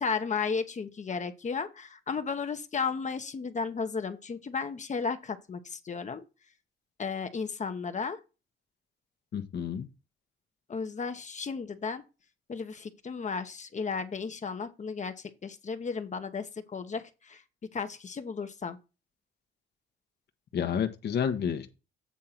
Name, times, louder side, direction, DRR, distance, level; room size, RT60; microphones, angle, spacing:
voice 1, 0.0-6.2 7.0-8.2 10.7-12.0 12.5-17.4 17.7-18.8, left 5 dB, 35° left, 1.0 m, -34 dB
voice 2, 9.3-9.9 20.5-21.7, left 8 dB, 60° left, 1.1 m, -30 dB
8.4 x 3.7 x 5.8 m
cardioid pair, 90°, 20 cm